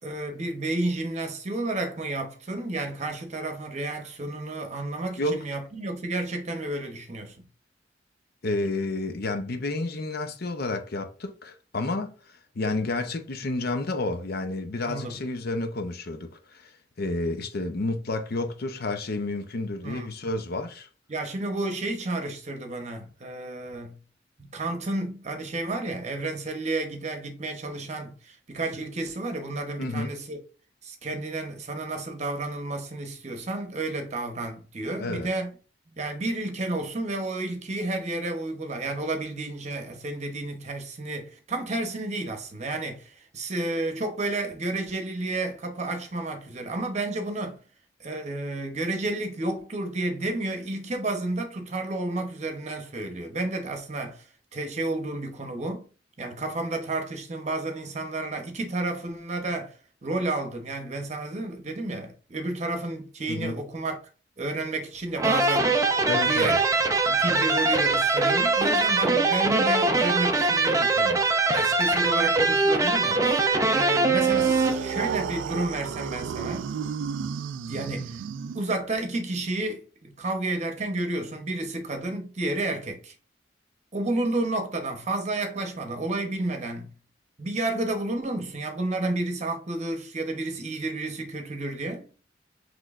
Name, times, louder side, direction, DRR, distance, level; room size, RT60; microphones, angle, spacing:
voice 1, 0.0-7.4 14.8-15.2 19.8-20.1 21.1-24.0 24.4-30.4 30.8-35.5 35.9-47.6 48.0-54.3 54.5-55.9 56.2-64.0 64.4-65.8 66.1-66.6 67.1-73.4 73.7-76.7 77.7-78.2 78.5-83.1 83.9-86.9 87.4-92.1, right 2 dB, 40° right, 0.9 m, -31 dB
voice 2, 8.4-16.7 17.0-20.9 29.8-30.2 35.0-35.3 63.3-63.6 66.1-66.6, left 2 dB, 55° left, 0.6 m, -30 dB
sound 1, 65.2-75.2, right 3 dB, 15° right, 0.4 m, -22 dB
sound 2, 74.2-79.0, right 7 dB, 85° right, 0.3 m, -33 dB
6.0 x 3.2 x 2.4 m
head